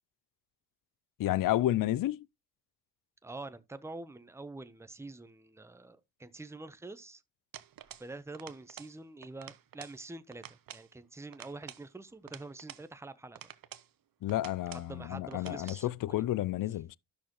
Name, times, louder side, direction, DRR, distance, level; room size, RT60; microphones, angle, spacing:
voice 1, 1.2-2.3 14.2-17.0, left 14 dB, 55° left, 0.5 m, -31 dB
voice 2, 3.2-7.2 8.0-13.5 14.7-16.2, right 2 dB, 5° right, 0.8 m, -46 dB
sound 1, 7.5-8.1 8.3-9.0 9.2-10.0 10.3-10.9 11.3-12.9 13.3-13.9 14.3-14.9 15.3-15.8, right 10 dB, 55° right, 0.8 m, -49 dB
12.0 x 6.1 x 3.0 m
supercardioid pair, 50°, 42 cm